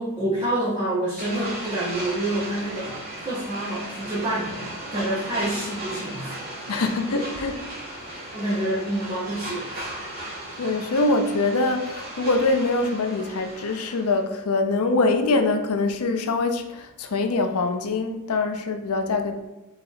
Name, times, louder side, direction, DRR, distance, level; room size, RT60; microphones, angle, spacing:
voice 1, 0.0-2.9 3.2-6.7 8.3-9.9, right 1 dB, 20° right, -8 dB, 0.9 m, -28 dB
sound 1, 1.2-14.2, right 1 dB, 40° right, 1.4 m, -36 dB
voice 2, 6.7-7.6 8.1-8.2 10.6-19.4, left 3 dB, 75° left, 6 dB, 0.6 m, -24 dB
4.0 x 2.8 x 4.0 m, 1.1 s
head